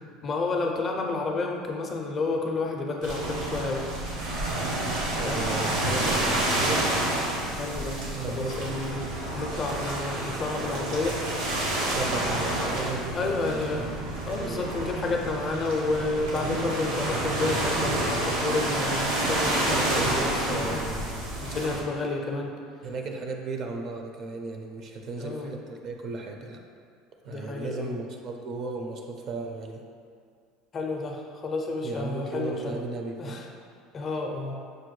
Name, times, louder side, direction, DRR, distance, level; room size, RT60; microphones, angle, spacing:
voice 1, 0.2-3.9 5.2-5.4 7.5-8.0 8.3-11.2 13.1-13.9 14.3-20.8 21.4-22.5 25.2-25.5 27.2-28.0 30.7-32.8 33.2-33.5 33.9-34.6, left 3 dB, 30° left, 1 dB, 0.4 m, -30 dB
sound 1, 3.0-21.8, right 1 dB, 80° right, 1.0 m, -29 dB
voice 2, 5.1-6.9 8.1-8.6 11.9-14.7 19.7-21.2 22.8-26.6 27.2-29.8 31.8-33.4, right 3 dB, 40° right, 3 dB, 0.4 m, -35 dB
6.2 x 2.2 x 3.1 m, 2.2 s
cardioid pair, 140°, 0 cm